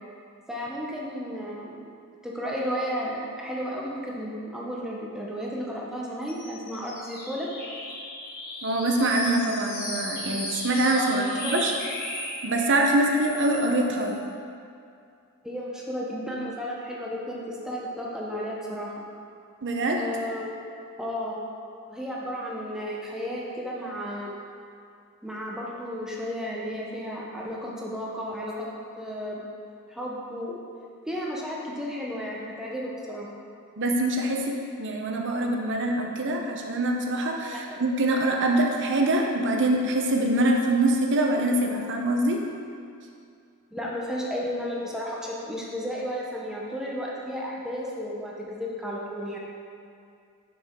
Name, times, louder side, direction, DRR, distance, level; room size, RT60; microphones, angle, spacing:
voice 1, 0.5-1.8 2.2-7.5 10.9-11.6 15.4-18.9 20.0-20.5 21.0-21.4 21.9-24.3 25.2-28.7 29.0-29.4 29.9-30.6 31.1-33.3 37.7-37.8 43.7-49.4, equal, 5° right, -4 dB, 0.8 m, -33 dB
sound 1, 6.2-14.2, left 1 dB, 45° left, 1.5 m, -36 dB
voice 2, 8.6-11.7 12.4-14.2 19.6-20.0 33.8-42.4, right 1 dB, 55° right, 1 dB, 0.8 m, -24 dB
7.0 x 6.4 x 3.7 m, 2.4 s
head